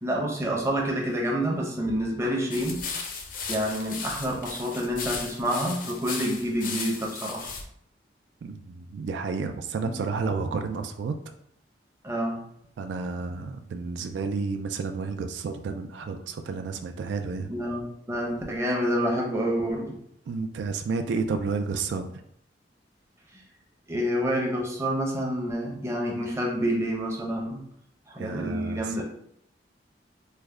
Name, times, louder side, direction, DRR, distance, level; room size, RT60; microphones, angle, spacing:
voice 1, 0.0-3.1 3.5-7.5 9.8-9.9 12.0-12.4 17.5-17.8 18.1-20.0 23.9-27.6 28.1-29.0, equal, 15° right, -2 dB, 0.6 m, -28 dB
sound 1, 2.5-7.6, left 5 dB, 50° left, 0.5 m, -36 dB
voice 2, 8.4-11.1 12.8-17.5 20.3-22.1 28.2-29.0, right 4 dB, 85° right, 6 dB, 0.3 m, -31 dB
3.3 x 2.1 x 3.5 m, 0.70 s
head